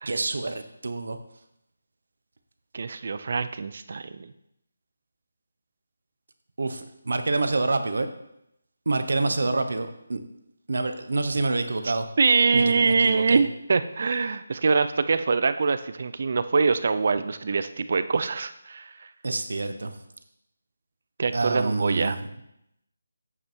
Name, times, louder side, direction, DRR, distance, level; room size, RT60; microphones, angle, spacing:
voice 1, 0.1-1.2 6.6-8.1 8.9-10.2 10.7-12.0 12.5-13.4 19.2-19.9 21.3-22.2, right 3 dB, 70° right, 8 dB, 0.9 m, -27 dB
voice 2, 2.7-4.3 11.8-19.1 21.2-22.2, right 4 dB, 45° right, 12 dB, 0.5 m, -24 dB
8.5 x 5.4 x 4.5 m, 0.80 s
figure-of-eight pair, 170°, 0 cm